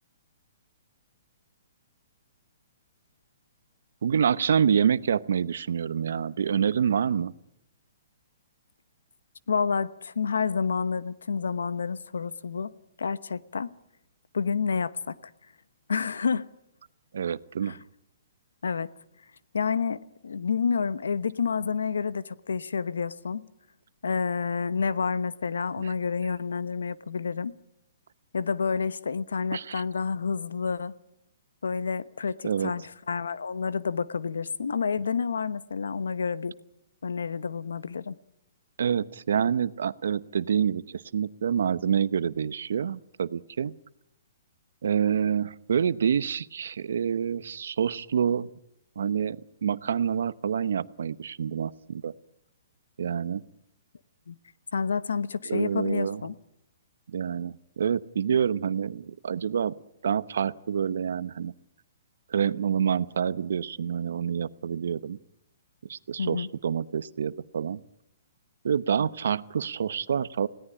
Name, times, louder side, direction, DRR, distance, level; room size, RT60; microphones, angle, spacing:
voice 1, 4.0-7.3 17.1-17.8 25.8-25.9 29.5-29.8 32.4-32.7 38.8-43.7 44.8-48.5 49.0-52.1 53.0-53.4 55.5-56.2 57.1-59.7 60.0-61.5 62.3-65.2 65.8-67.8 68.6-70.5, right 7 dB, 75° right, 0.9 m, -27 dB
voice 2, 9.5-12.7 13.0-13.7 14.3-15.2 15.9-16.5 17.6-17.8 18.6-18.9 19.5-23.5 24.0-27.5 28.3-30.9 31.6-36.5 37.0-38.2 54.3-54.4 54.7-56.4 66.2-66.5, left 5 dB, 90° left, 1.0 m, -29 dB
20.5 x 17.0 x 9.9 m
hypercardioid pair, 145°, 0 cm